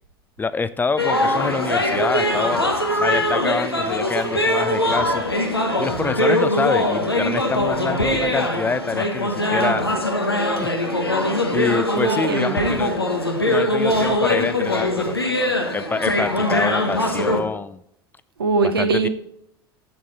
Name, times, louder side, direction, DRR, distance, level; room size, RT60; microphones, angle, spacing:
voice 1, 0.4-5.2 5.8-9.9 10.6-10.7 11.5-12.9 13.5-15.3 15.7-17.8 18.8-19.1, left 4 dB, 15° left, 15 dB, 0.4 m, -26 dB
sound 1, 1.0-17.4, left 1 dB, 90° left, 1.1 m, -22 dB
voice 2, 9.4-10.0 11.9-12.7 18.4-19.1, right 4 dB, 75° right, 7 dB, 1.1 m, -23 dB
11.0 x 7.6 x 4.1 m, 0.74 s
figure-of-eight pair, 70°, 12 cm